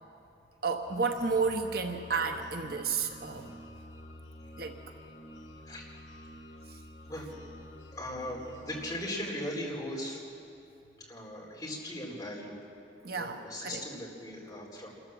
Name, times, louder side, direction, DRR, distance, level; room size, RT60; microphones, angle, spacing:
voice 1, 0.6-3.6 4.6-4.8 13.0-13.8, right 4 dB, 55° right, 4 dB, 1.1 m, -31 dB
sound 1, 0.9-9.1, left 1 dB, 75° left, 1.5 m, -49 dB
voice 2, 7.9-10.2 11.0-12.6 13.1-14.9, left 1 dB, 20° left, -4 dB, 4.1 m, -39 dB
27.0 x 13.5 x 7.3 m, 2.7 s
head